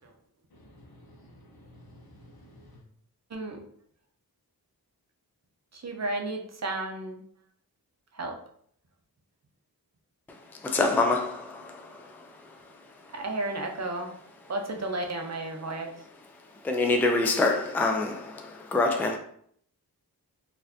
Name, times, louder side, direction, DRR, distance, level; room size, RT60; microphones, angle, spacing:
voice 1, 0.5-2.8, equal, 70° left, 0.9 m, -53 dB
voice 2, 5.8-7.2 8.2-8.3 13.1-14.1 14.5-15.9, right 2 dB, 45° right, 0.6 m, -32 dB
voice 3, 10.6-12.2 16.6-19.2, left 3 dB, 5° left, 0.3 m, -26 dB
4.1 x 2.5 x 2.7 m
wide cardioid pair, 85°, 38 cm